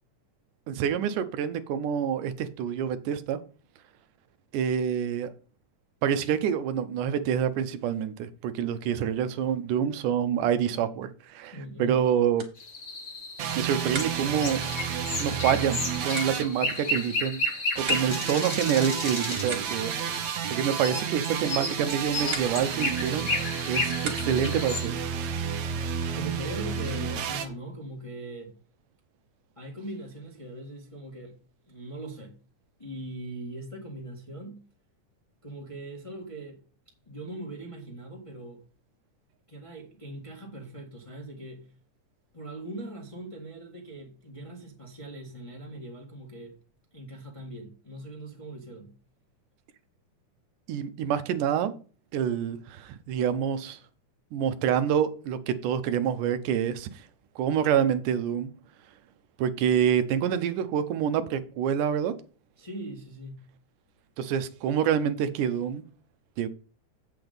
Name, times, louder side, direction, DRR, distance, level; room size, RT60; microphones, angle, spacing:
voice 1, 0.7-3.4 4.5-5.3 6.0-12.4 13.6-14.6 15.2-17.4 17.8-19.9 20.5-23.3 23.7-25.0 50.7-51.7 52.1-53.8 54.3-56.9 57.4-58.5 59.4-62.1 64.2-65.8 66.4-66.5, right 8 dB, 90° right, 2.4 m, -27 dB
voice 2, 11.5-12.0 20.9-21.1 25.9-28.5 29.6-31.3 31.7-32.3 32.8-34.6 35.4-36.6 37.0-38.6 39.5-41.7 42.3-46.6 46.9-48.9 62.6-63.4, right 1 dB, 15° left, 1.1 m, -40 dB
sound 1, 12.3-24.6, right 6 dB, 50° right, 2.2 m, -44 dB
sound 2, 12.6-24.9, left 2 dB, 35° left, 1.2 m, -33 dB
sound 3, 13.4-17.1 17.8-27.5, right 7 dB, 70° right, 2.3 m, -32 dB
8.0 x 6.8 x 5.2 m
omnidirectional pair, 3.5 m